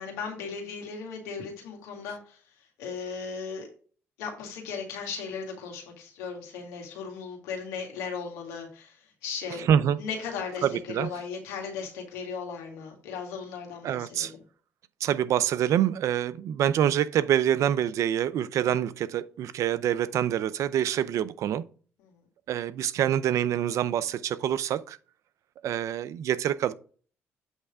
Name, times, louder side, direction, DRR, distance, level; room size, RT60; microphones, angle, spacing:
voice 1, 0.0-3.7 4.2-9.6 10.0-14.3 22.0-22.2, left 5 dB, 90° left, 2.0 m, -37 dB
voice 2, 9.6-10.0 10.6-11.1 13.8-14.3 15.0-21.6 22.5-25.0 25.6-26.7, right 10 dB, 70° right, 0.5 m, -26 dB
8.2 x 3.3 x 4.8 m
supercardioid pair, 65°, 6 cm